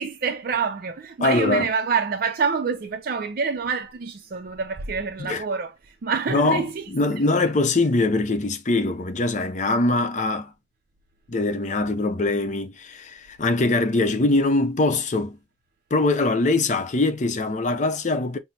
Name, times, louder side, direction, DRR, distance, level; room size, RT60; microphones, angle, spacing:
voice 1, 0.0-7.2, right 5 dB, 55° right, 0.4 m, -27 dB
voice 2, 1.2-1.7 5.2-5.4 6.3-6.6 6.9-10.5 11.3-15.4 15.9-18.4, left 2 dB, 40° left, 0.6 m, -22 dB
6.0 x 2.0 x 2.7 m
head